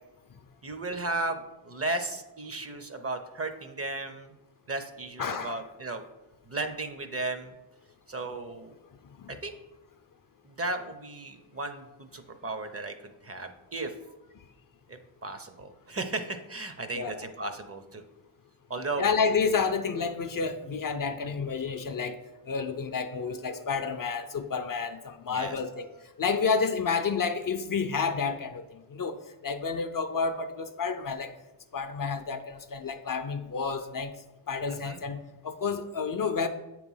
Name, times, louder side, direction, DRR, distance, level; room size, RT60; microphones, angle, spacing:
voice 1, 0.6-4.3 4.7-6.0 6.5-7.6 8.1-8.7 9.4-9.5 10.4-13.9 15.2-18.0 18.7-19.1 25.3-25.6 34.7-35.0, right 2 dB, 30° right, 8 dB, 0.6 m, -35 dB
voice 2, 5.2-5.6 9.0-9.4 16.9-17.3 19.0-22.2 22.5-31.3 31.7-34.1 34.5-36.5, left 5 dB, 45° left, 8 dB, 0.5 m, -30 dB
7.9 x 3.1 x 5.4 m, 1.0 s
wide cardioid pair, 95°, 47 cm